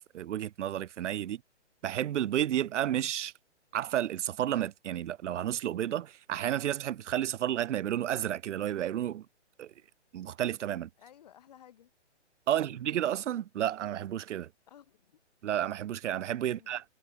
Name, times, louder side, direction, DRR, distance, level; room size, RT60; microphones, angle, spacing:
voice 1, 0.0-1.4 1.8-3.3 3.7-9.3 9.6-9.7 10.1-10.9 12.5-14.5 15.4-16.8, right 11 dB, 80° right, 0.5 m, -31 dB
voice 2, 11.0-11.9 12.5-12.8 14.7-15.2 16.4-16.7, left 10 dB, 35° left, 4.6 m, -56 dB
hypercardioid pair, 175°, 36 cm